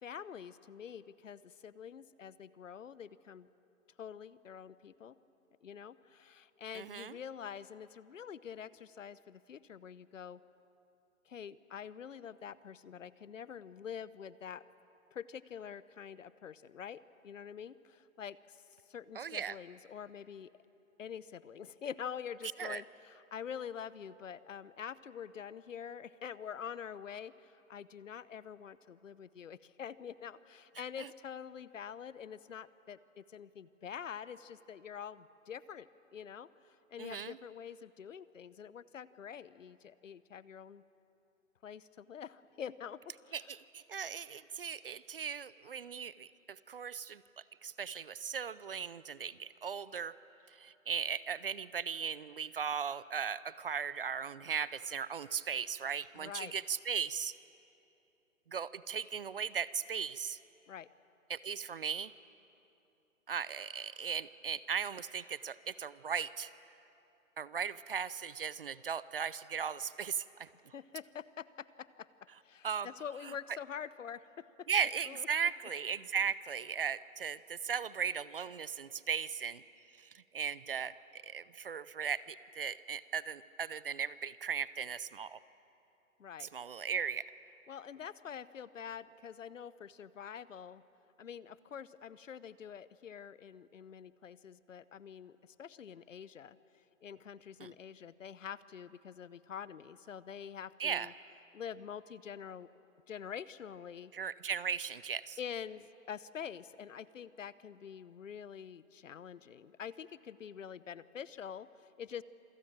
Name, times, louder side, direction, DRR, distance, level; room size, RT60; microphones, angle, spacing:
voice 1, 0.0-3.5 4.0-5.2 5.6-10.4 11.3-14.6 15.1-18.6 18.9-20.5 21.0-40.8 41.6-43.5 56.1-56.5 60.7-60.9 70.7-72.1 72.4-74.7 75.1-75.3 86.2-86.5 87.7-90.8 91.2-96.6 97.0-101.1 101.5-102.7 103.1-104.1 105.4-112.2, left 8 dB, 65° left, 17 dB, 0.9 m, -46 dB
voice 2, 6.7-7.2 19.1-19.6 22.6-22.8 31.0-31.1 37.0-37.4 43.3-47.2 47.6-50.1 50.5-57.3 58.5-60.4 61.3-62.1 63.3-66.5 67.4-70.7 72.6-72.9 74.7-79.6 80.0-85.4 86.4-87.3 97.6-97.7 100.8-101.1 104.1-105.4, right 7 dB, 45° right, 18 dB, 0.6 m, -37 dB
27.0 x 20.0 x 8.8 m, 2.9 s
hypercardioid pair, 155°, 41 cm